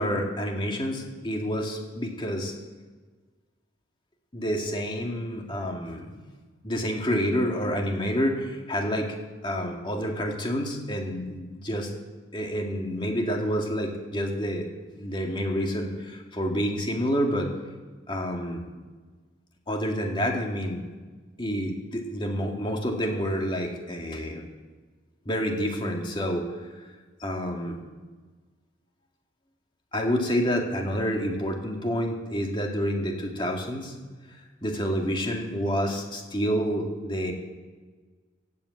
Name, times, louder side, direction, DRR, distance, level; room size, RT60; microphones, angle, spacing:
voice 1, 0.0-2.5 4.3-6.1 6.6-9.1 9.4-11.9 12.3-14.7 15.0-17.5 18.1-18.6 19.7-20.9 21.4-24.4 25.3-26.5 27.2-27.8 29.9-33.9 34.6-37.3, equal, 25° left, 1 dB, 2.1 m, -28 dB
16.0 x 8.5 x 8.6 m, 1.4 s
head